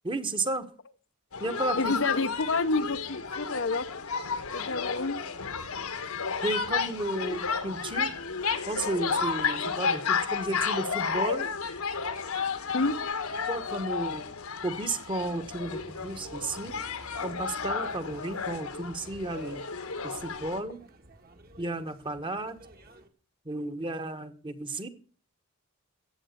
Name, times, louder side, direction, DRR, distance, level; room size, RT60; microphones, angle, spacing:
voice 1, 0.0-0.7 1.4-1.9 6.4-8.1 8.7-11.5 13.5-14.2 14.6-16.7 17.2-19.6 20.0-20.8 21.6-22.6 23.4-24.9, right 2 dB, 20° right, 9 dB, 1.2 m, -33 dB
sound 1, 1.3-20.6, left 5 dB, 80° left, 1.5 m, -32 dB
voice 2, 1.8-3.9 4.5-5.2 12.7-12.9, left 3 dB, 55° left, 11 dB, 0.7 m, -28 dB
sound 2, 15.3-23.1, right 1 dB, 45° right, 1.7 m, -52 dB
15.0 x 8.7 x 6.7 m, 0.42 s
head